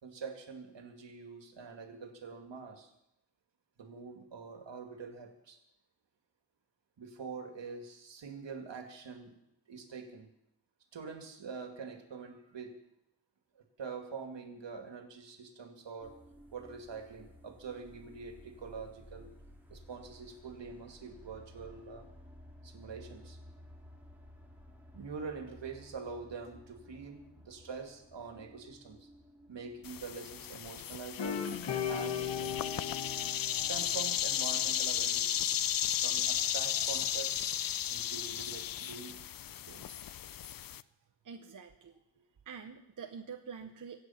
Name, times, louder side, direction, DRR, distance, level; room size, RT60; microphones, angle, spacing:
voice 1, 0.0-2.9 3.8-5.6 7.0-9.4 9.7-10.3 10.9-12.7 13.8-16.1 16.5-19.3 19.7-22.1 22.6-23.4 24.9-29.1 29.5-31.4 31.9-32.8 33.7-35.4 36.0-37.5 37.9-39.2 39.7-40.1, right 5 dB, 70° right, 5 dB, 2.4 m, -45 dB
sound 1, 16.0-30.1, equal, 5° right, 2.1 m, -55 dB
sound 2, 29.8-40.8, left 10 dB, 50° left, 0.5 m, -34 dB
sound 3, 31.2-34.7, left 7 dB, 70° left, 1.6 m, -37 dB
voice 2, 41.2-41.9 42.5-44.0, right 6 dB, 45° right, 5 dB, 0.9 m, -46 dB
24.5 x 8.5 x 5.8 m, 0.82 s
wide cardioid pair, 145°, 44 cm